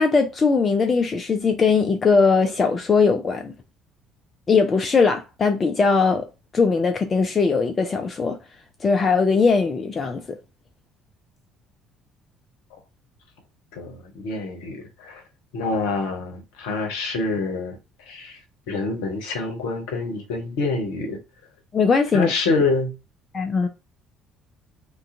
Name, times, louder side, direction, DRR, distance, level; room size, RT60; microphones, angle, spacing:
voice 1, 0.0-3.5 4.5-6.2 6.5-8.4 8.8-10.4 21.7-22.3 23.3-23.7, left 4 dB, 35° left, 0.3 m, -20 dB
voice 2, 13.8-15.2 15.5-17.8 18.1-18.4 18.7-21.2 22.1-22.9, left 3 dB, 65° left, 0.7 m, -26 dB
2.4 x 2.2 x 2.6 m
figure-of-eight pair, 50°, 0 cm